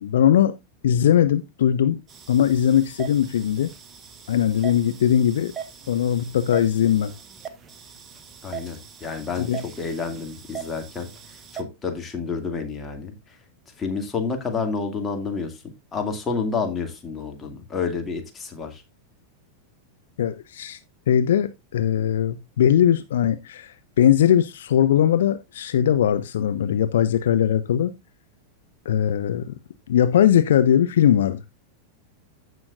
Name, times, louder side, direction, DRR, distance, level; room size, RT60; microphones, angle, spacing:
voice 1, 0.0-0.5 0.8-3.7 4.3-5.5 5.9-7.1 9.4-9.6 20.2-20.8 21.1-27.9 28.9-29.5 29.9-31.4, left 10 dB, 60° left, 0.6 m, -20 dB
sound 1, 2.1-11.6, right 8 dB, 25° right, 1.2 m, -40 dB
voice 2, 8.4-13.4 13.8-18.8, left 4 dB, 20° left, 2.3 m, -30 dB
15.5 x 6.1 x 2.5 m
figure-of-eight pair, 90°, 0 cm